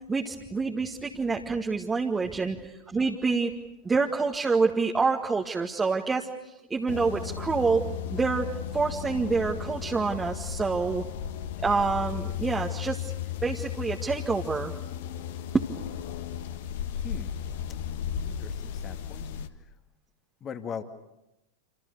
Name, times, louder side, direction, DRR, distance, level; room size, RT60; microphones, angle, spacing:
voice 1, 0.1-3.5 3.8-7.8 8.1-8.5 8.7-11.0 11.6-13.1 13.4-14.7 15.5-15.7, right 4 dB, 15° right, 1 dB, 1.9 m, -27 dB
sound 1, 6.9-19.5, left 9 dB, 55° left, 1.6 m, -35 dB
voice 2, 16.9-17.4 18.3-19.3 19.6-19.7 20.4-20.8, left 7 dB, 25° left, 7 dB, 2.2 m, -40 dB
28.5 x 28.0 x 6.8 m, 0.89 s
figure-of-eight pair, 90°, 0 cm